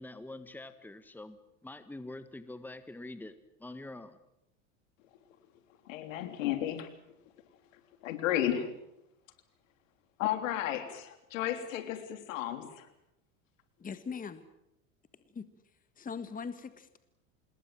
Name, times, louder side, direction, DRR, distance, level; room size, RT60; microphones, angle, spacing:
voice 1, 0.0-3.3 3.6-4.2, left 2 dB, 5° left, 12 dB, 1.6 m, -45 dB
voice 2, 5.9-6.9 8.0-8.7 10.2-12.9, left 11 dB, 70° left, 9 dB, 3.5 m, -33 dB
voice 3, 13.8-14.5 15.3-15.5 16.0-17.0, left 5 dB, 20° left, 12 dB, 1.7 m, -40 dB
26.5 x 21.0 x 7.7 m, 0.85 s
hypercardioid pair, 90°, 40 cm